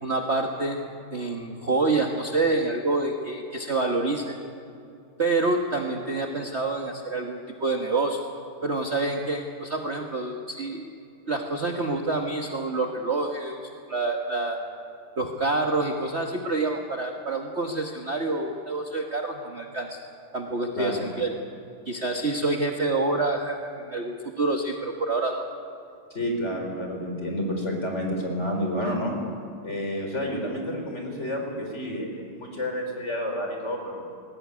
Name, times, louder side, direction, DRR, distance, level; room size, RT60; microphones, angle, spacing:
voice 1, 0.0-0.8 1.1-4.4 5.2-8.2 8.6-10.9 11.3-13.6 13.9-14.6 15.2-20.0 20.3-21.3 21.8-25.4, right 3 dB, 35° right, 2 dB, 1.4 m, -27 dB
voice 2, 20.7-21.1 26.1-29.2 29.6-34.0, equal, 30° left, 2 dB, 4.2 m, -30 dB
20.0 x 16.5 x 9.6 m, 2.6 s
omnidirectional pair, 2.4 m